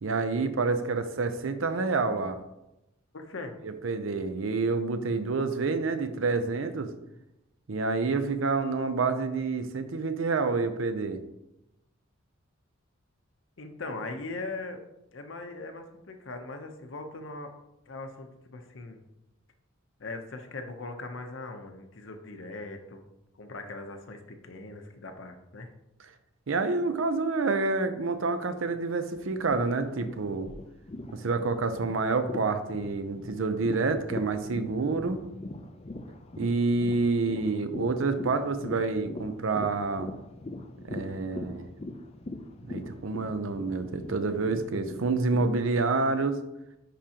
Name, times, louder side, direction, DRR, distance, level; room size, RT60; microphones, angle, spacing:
voice 1, 0.0-2.4 3.6-6.9 7.7-11.2 26.5-30.5 31.1-35.2 36.4-40.1 40.8-41.7 42.6-46.4, right 3 dB, 80° right, 9 dB, 0.6 m, -28 dB
voice 2, 3.1-3.5 13.6-14.8 15.1-17.5 17.9-19.0 20.0-23.0 23.3-25.7, left 2 dB, 70° left, 5 dB, 0.8 m, -40 dB
sound 1, 29.2-45.6, left 2 dB, 30° left, 0.4 m, -41 dB
9.9 x 3.7 x 2.9 m, 0.91 s
head